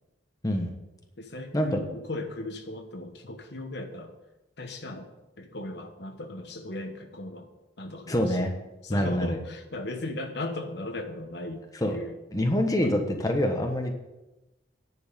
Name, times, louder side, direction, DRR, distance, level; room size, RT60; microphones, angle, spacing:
voice 1, 1.2-4.1 4.6-5.1 5.4-7.5 7.8-8.5 8.8-12.2 12.7-12.9, left 2 dB, 60° left, 5 dB, 1.2 m, -37 dB
voice 2, 8.1-8.5 8.9-9.4 11.8-11.9 12.3-13.9, left 1 dB, 20° left, 3 dB, 1.2 m, -25 dB
10.0 x 6.4 x 8.4 m, 1.0 s
head